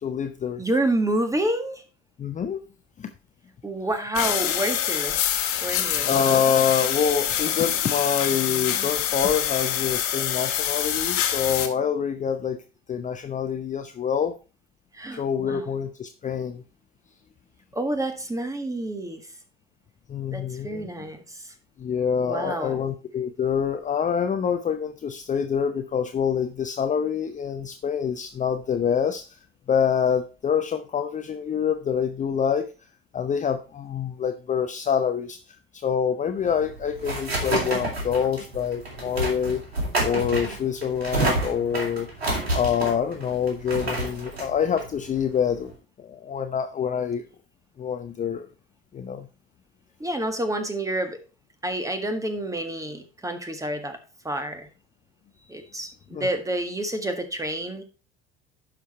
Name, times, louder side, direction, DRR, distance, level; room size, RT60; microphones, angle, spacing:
voice 1, 0.0-0.6 2.2-2.6 3.0-3.1 6.1-12.6 12.9-14.3 15.1-16.6 20.1-21.1 21.8-29.4 29.7-32.7 33.1-35.4 35.7-39.6 40.0-42.1 42.5-45.7 46.0-47.2 47.8-48.5 48.9-49.3 56.1-56.3, left 7 dB, 25° left, 7 dB, 0.7 m, -26 dB
voice 2, 0.6-1.8 3.6-5.2 5.6-6.1 14.9-15.7 17.7-19.2 20.3-21.5 22.2-22.8 50.0-51.2 51.6-54.0 54.2-54.7 55.5-57.8, right 1 dB, 10° right, 8 dB, 1.7 m, -28 dB
sound 1, 4.1-11.7, left 10 dB, 45° left, 1.5 m, -26 dB
sound 2, 36.4-45.7, right 2 dB, 85° right, 2.7 m, -29 dB
11.0 x 5.1 x 4.3 m, 0.34 s
figure-of-eight pair, 70°, 30 cm